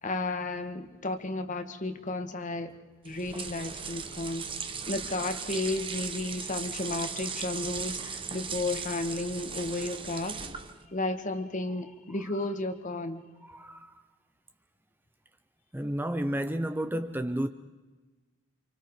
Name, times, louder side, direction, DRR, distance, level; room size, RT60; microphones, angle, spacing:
voice 1, 0.0-2.7 3.0-4.4 4.9-10.4 10.9-13.2, left 2 dB, 40° left, 1.6 m, -33 dB
sound 1, 3.0-10.9, right 6 dB, 25° right, 1.2 m, -37 dB
voice 2, 13.4-14.0 15.7-17.5, right 1 dB, 10° right, 0.6 m, -31 dB
29.5 x 27.0 x 4.8 m
head